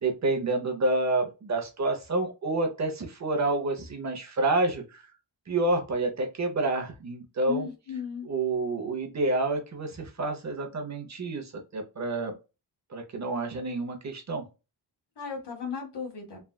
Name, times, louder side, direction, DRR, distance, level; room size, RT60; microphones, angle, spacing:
voice 1, 0.0-5.1 5.5-7.7 8.2-12.3 12.9-14.4, right 2 dB, 40° right, 3 dB, 0.7 m, -28 dB
voice 2, 7.4-8.3 15.2-16.4, left 6 dB, 70° left, 1 dB, 1.4 m, -35 dB
3.3 x 2.3 x 2.2 m, 0.29 s
wide cardioid pair, 135°, 42 cm